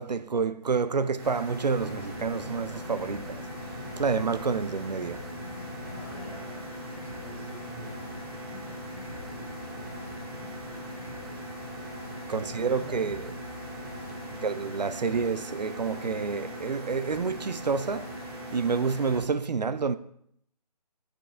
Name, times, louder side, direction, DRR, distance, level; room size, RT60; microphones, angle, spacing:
voice 1, 0.0-3.4 4.0-5.2 12.3-13.3 14.4-18.1 18.5-20.0, right 5 dB, 80° right, 0.5 m, -28 dB
sound 1, 1.2-19.2, equal, 35° right, 2.5 m, -40 dB
sound 2, 1.7-14.4, left 4 dB, 70° left, 0.7 m, -46 dB
voice 2, 5.8-8.2 9.1-10.1 10.5-11.1 12.3-13.1 14.1-14.6, equal, 5° left, 1.9 m, -48 dB
9.1 x 7.5 x 3.5 m
figure-of-eight pair, 150°, 21 cm